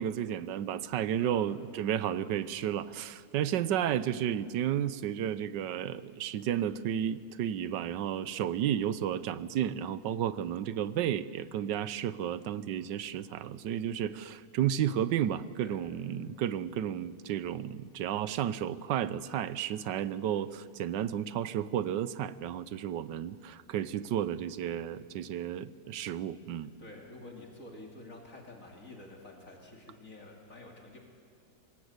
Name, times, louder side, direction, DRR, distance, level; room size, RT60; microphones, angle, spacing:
voice 1, 0.0-26.7, right 10 dB, 80° right, 16 dB, 1.4 m, -32 dB
voice 2, 1.2-1.5 15.6-15.8 26.6-31.0, left 2 dB, 50° left, 1 dB, 2.8 m, -49 dB
25.0 x 20.5 x 8.2 m, 2.4 s
omnidirectional pair, 1.9 m